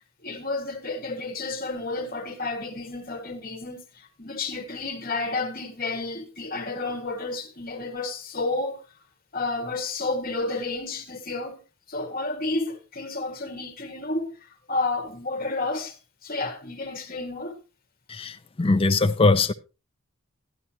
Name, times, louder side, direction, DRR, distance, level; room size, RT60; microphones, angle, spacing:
voice 1, 0.2-8.8 9.3-11.6 11.9-14.3 14.7-16.0 16.2-17.6, left 3 dB, 40° left, 1.6 m, -31 dB
voice 2, 18.1-19.5, left 3 dB, 25° left, 0.5 m, -21 dB
12.0 x 11.0 x 2.8 m
head